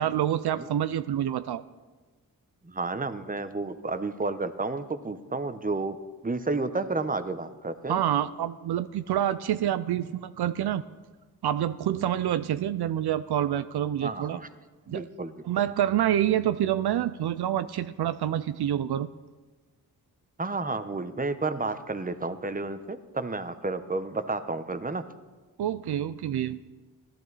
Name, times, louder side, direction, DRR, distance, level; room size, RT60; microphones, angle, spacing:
voice 1, 0.0-1.6 7.9-10.8 11.4-14.4 14.9-15.0 15.4-19.1 25.6-26.6, right 11 dB, 80° right, 12 dB, 0.5 m, -27 dB
voice 2, 2.6-6.0 6.2-8.0 14.0-14.5 14.9-15.3 20.4-25.0, right 3 dB, 20° right, 11 dB, 0.9 m, -31 dB
15.5 x 11.5 x 4.1 m, 1.3 s
cardioid pair, 45°, 39 cm